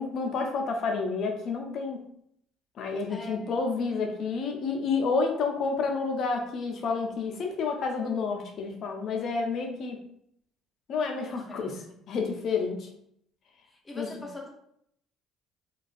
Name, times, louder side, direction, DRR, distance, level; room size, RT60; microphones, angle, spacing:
voice 1, 0.0-2.0 2.8-10.0 10.9-11.8 12.1-12.9 13.9-14.1, left 4 dB, 60° left, 3 dB, 0.5 m, -29 dB
voice 2, 3.1-3.4 11.3-12.0 13.7-14.5, left 2 dB, 20° left, 1 dB, 0.6 m, -42 dB
2.4 x 2.3 x 2.5 m, 0.71 s
supercardioid pair, 80°, 0 cm